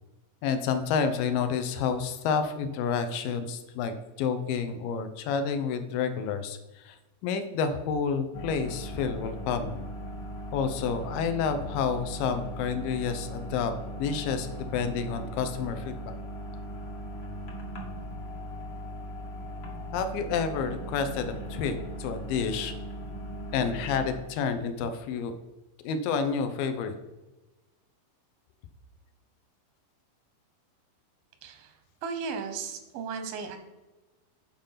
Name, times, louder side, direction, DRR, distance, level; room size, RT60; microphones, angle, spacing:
voice 1, 0.4-9.8 10.5-13.7 14.0-16.1 19.9-22.7 23.5-25.3 25.8-27.0, left 6 dB, 80° left, 9 dB, 2.4 m, -29 dB
sound 1, 8.3-24.2, equal, 50° left, 1.4 m, -39 dB
voice 2, 31.4-31.7 32.0-33.6, right 5 dB, 85° right, 7 dB, 2.9 m, -35 dB
9.0 x 5.2 x 5.7 m, 1.1 s
omnidirectional pair, 4.1 m